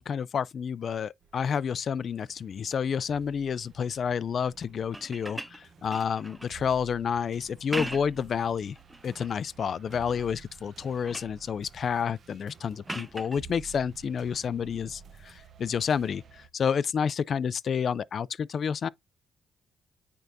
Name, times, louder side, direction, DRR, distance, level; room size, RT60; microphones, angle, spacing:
voice 1, 0.0-8.8 9.0-18.9, left 7 dB, 50° left, 0.4 m, -30 dB
sound 1, 1.2-16.5, right 6 dB, 55° right, 0.8 m, -52 dB
sound 2, 4.8-6.6 7.5-8.3 8.8-9.4 9.9-10.4 10.7-11.4 12.9-13.4 15.2-15.3, right 1 dB, 10° right, 0.8 m, -40 dB
9.0 x 4.7 x 2.6 m
cardioid pair, 90°, 0 cm